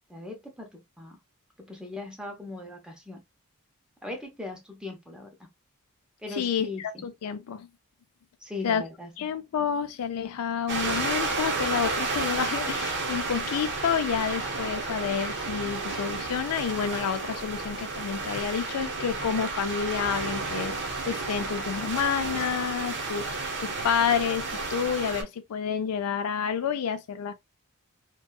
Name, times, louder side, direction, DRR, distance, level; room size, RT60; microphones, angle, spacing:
voice 1, 0.1-1.2 1.6-3.2 4.0-5.3 6.2-7.0 8.4-9.1, left 3 dB, 5° right, 0.7 m, -39 dB
voice 2, 6.3-7.7 8.6-8.8 9.2-27.3, left 7 dB, 75° left, 0.4 m, -29 dB
sound 1, 10.7-25.2, right 3 dB, 55° right, 0.7 m, -32 dB
2.7 x 2.2 x 2.2 m
head